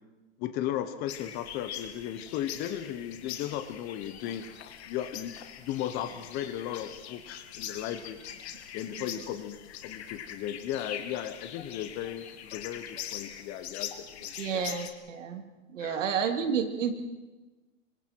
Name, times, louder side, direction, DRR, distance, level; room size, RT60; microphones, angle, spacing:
voice 1, 0.4-4.4 4.8-8.2 8.7-9.6 9.8-14.6 15.8-16.0, left 11 dB, 25° left, 12 dB, 0.9 m, -36 dB
sound 1, 1.1-14.9, left 10 dB, 60° left, 2.2 m, -43 dB
voice 2, 14.4-15.4 15.7-16.9, right 7 dB, 80° right, 5 dB, 3.1 m, -30 dB
27.0 x 25.0 x 4.6 m, 1.2 s
hypercardioid pair, 155°, 37 cm